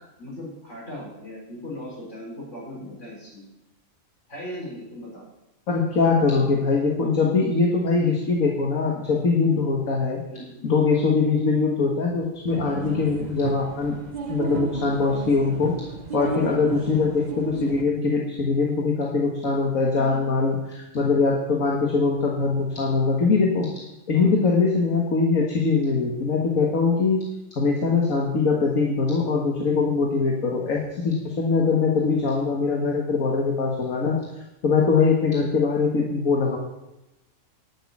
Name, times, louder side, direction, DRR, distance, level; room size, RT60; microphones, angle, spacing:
voice 1, 0.2-3.5 4.3-5.2 10.3-10.6 16.3-16.7 19.9-20.3 24.1-24.3, equal, 55° left, -5 dB, 6.1 m, -38 dB
voice 2, 5.7-10.2 10.6-14.0 14.3-15.7 16.1-23.7 24.1-27.2 27.5-34.2 34.6-36.6, left 4 dB, 75° left, -1 dB, 2.0 m, -22 dB
sound 1, 12.5-17.8, right 4 dB, 35° right, 0.9 m, -33 dB
11.5 x 6.3 x 8.5 m, 0.93 s
omnidirectional pair, 1.5 m